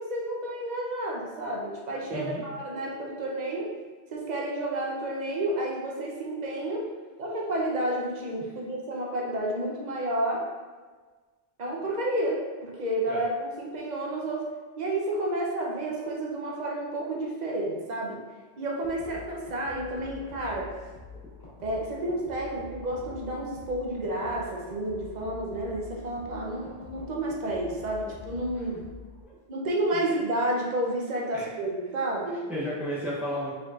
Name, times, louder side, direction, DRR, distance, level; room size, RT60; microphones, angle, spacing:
voice 1, 0.0-3.7 4.1-6.9 7.2-10.5 11.6-14.5 14.8-18.2 18.6-20.7 21.6-28.8 29.5-32.5, right 1 dB, 45° right, -2 dB, 0.7 m, -30 dB
voice 2, 2.1-2.4 8.4-8.5 13.1-13.2 28.5-28.7 29.9-30.1 31.3-31.5 32.5-33.5, equal, ahead, -8 dB, 0.4 m, -33 dB
sound 1, 18.8-29.2, left 4 dB, 60° left, 1.5 m, -46 dB
5.0 x 3.7 x 2.4 m, 1.4 s
omnidirectional pair, 1.2 m